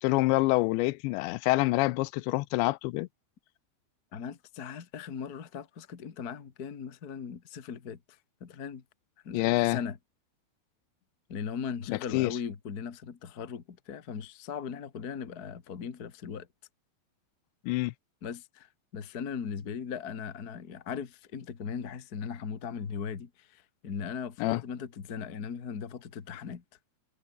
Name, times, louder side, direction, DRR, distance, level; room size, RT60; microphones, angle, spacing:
voice 1, 0.0-3.1 9.3-9.8 11.9-12.4 17.7-17.9 24.4-24.6, left 21 dB, 85° left, 2.9 m, -26 dB
voice 2, 4.1-8.0 8.4-8.8 9.2-10.0 11.3-16.5 18.2-18.7 18.9-26.6, left 6 dB, 55° left, 1.0 m, -38 dB
omnidirectional pair, 5.1 m